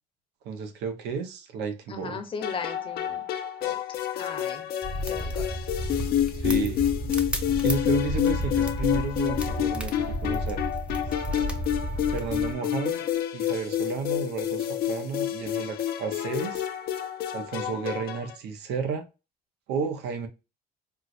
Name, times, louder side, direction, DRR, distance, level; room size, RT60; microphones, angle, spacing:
voice 1, 0.4-2.2 6.3-6.8 7.6-10.6 12.1-13.0 13.3-16.7 17.3-19.1 19.7-20.3, right 5 dB, 85° right, 0.8 m, -32 dB
voice 2, 1.9-3.2 3.6-3.8 4.2-4.7 5.0-5.6 11.4-11.5, left 5 dB, 30° left, 0.8 m, -37 dB
sound 1, 2.4-18.3, left 11 dB, 65° left, 0.6 m, -29 dB
sound 2, 4.8-12.5, equal, 5° right, 0.5 m, -32 dB
4.4 x 2.1 x 2.4 m
cardioid pair, 110°, 17 cm